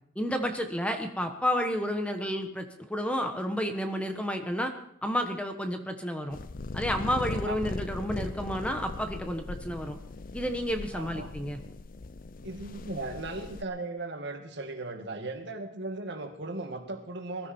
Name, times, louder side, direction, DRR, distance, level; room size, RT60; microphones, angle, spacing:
voice 1, 0.2-4.7 5.0-6.4 6.7-10.0 10.3-11.6, equal, 5° left, 5 dB, 1.1 m, -31 dB
sound 1, 6.3-13.6, left 3 dB, 45° left, 0.5 m, -39 dB
voice 2, 10.9-11.3 12.4-17.5, right 2 dB, 55° right, 5 dB, 2.1 m, -37 dB
21.5 x 13.5 x 4.5 m, 0.70 s
head